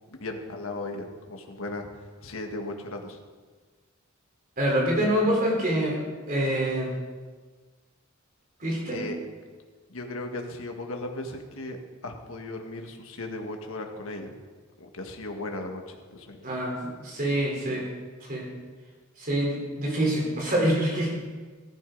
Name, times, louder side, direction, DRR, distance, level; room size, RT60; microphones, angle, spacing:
voice 1, 0.2-3.2 8.9-9.2 9.9-11.8 12.0-14.3 14.8-16.5, left 2 dB, 80° left, 3 dB, 1.6 m, -36 dB
voice 2, 4.6-6.0 6.3-6.9 8.6-9.0 16.4-17.9 18.2-18.5 19.2-21.3, right 1 dB, 40° right, -2 dB, 3.8 m, -26 dB
15.5 x 13.5 x 3.9 m, 1.4 s
head